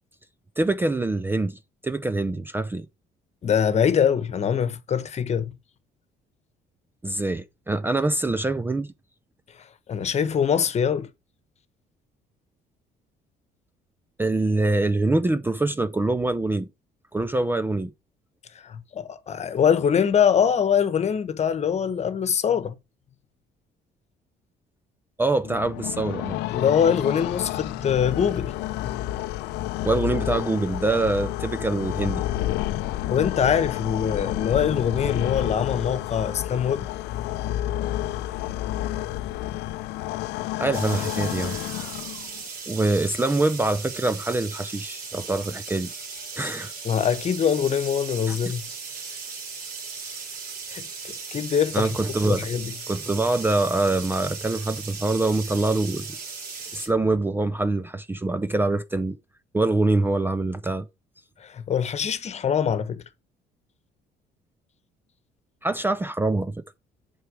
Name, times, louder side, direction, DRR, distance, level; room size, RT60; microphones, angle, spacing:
voice 1, 0.6-2.9 7.0-8.9 14.2-16.7 17.1-17.9 25.2-26.4 29.8-32.2 40.6-41.6 42.7-45.9 46.4-46.7 48.3-48.4 51.7-52.5 52.9-56.2 56.7-59.2 59.5-60.9 65.6-66.6, right 2 dB, 10° right, 0.5 m, -24 dB
voice 2, 3.4-5.5 9.9-11.1 18.5-22.7 26.5-29.1 33.1-36.9 46.8-48.6 50.7-51.9 52.2-52.7 61.4-63.0, left 7 dB, 40° left, 1.1 m, -23 dB
sound 1, 25.4-42.4, left 14 dB, 90° left, 0.6 m, -30 dB
sound 2, 40.7-56.9, right 5 dB, 70° right, 3.7 m, -37 dB
8.0 x 4.7 x 4.8 m
cardioid pair, 110°, 17 cm